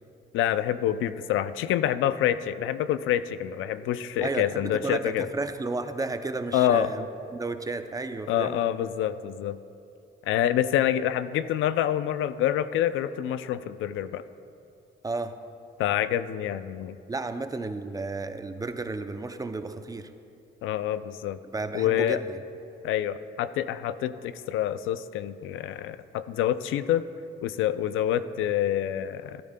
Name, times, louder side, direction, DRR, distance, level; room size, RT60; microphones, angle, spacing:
voice 1, 0.3-5.3 6.5-6.9 8.3-9.6 10.3-14.2 15.8-17.0 20.6-21.4 21.7-22.2 22.8-27.0 27.4-29.4, left 11 dB, 85° left, 13 dB, 0.4 m, -27 dB
voice 2, 4.2-7.1 7.3-8.6 15.0-15.4 17.1-20.1 21.5-22.4, right 3 dB, 20° right, 9 dB, 0.5 m, -32 dB
13.0 x 12.0 x 2.2 m, 2.6 s
cardioid pair, 90°, 20 cm